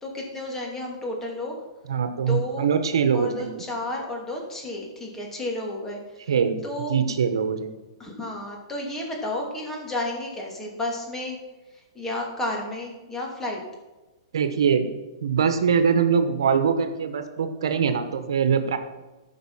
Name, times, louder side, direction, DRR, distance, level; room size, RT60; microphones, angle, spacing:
voice 1, 0.0-1.5 2.3-2.7 3.1-6.0 6.6-6.9 8.0-11.4 11.9-13.6, left 1 dB, 15° left, 0 dB, 2.6 m, -31 dB
voice 2, 1.9-3.6 6.3-6.6 6.9-7.8 14.3-14.9 15.2-18.8, right 6 dB, 80° right, 9 dB, 1.2 m, -23 dB
14.0 x 5.7 x 5.6 m, 1.1 s
hypercardioid pair, 140°, 3 cm